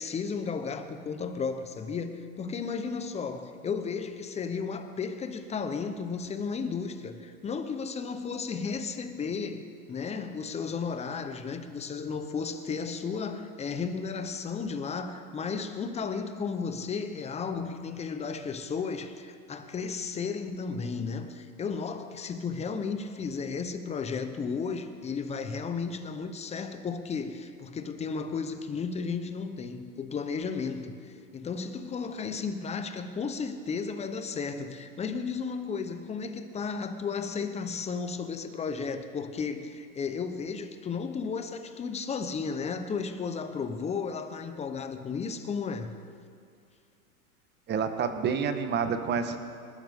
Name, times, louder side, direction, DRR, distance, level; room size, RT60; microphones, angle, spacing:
voice 1, 0.0-46.0, left 5 dB, 15° left, 8 dB, 0.9 m, -34 dB
voice 2, 47.7-49.4, right 6 dB, 25° right, 8 dB, 1.3 m, -28 dB
25.5 x 12.5 x 3.7 m, 2.4 s
hypercardioid pair, 125°, 44 cm